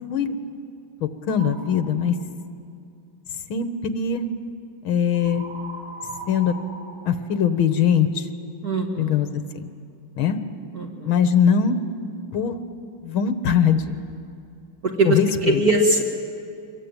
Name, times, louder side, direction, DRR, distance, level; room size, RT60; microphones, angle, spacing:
voice 1, 1.0-2.2 3.5-4.3 4.8-5.4 6.3-6.5 7.1-8.3 9.0-9.3 9.5-9.6 10.2-10.4 11.1-11.8 12.3-12.6 13.0-14.0 15.1-15.6, left 7 dB, 70° left, 9 dB, 2.1 m, -21 dB
sound 1, 1.2-1.8 5.1-7.9, right 2 dB, 10° right, 7.7 m, -39 dB
voice 2, 8.6-9.1 10.7-11.1 15.0-16.0, right 2 dB, 45° right, 1 dB, 2.6 m, -21 dB
24.5 x 22.5 x 9.0 m, 2.4 s
omnidirectional pair, 2.4 m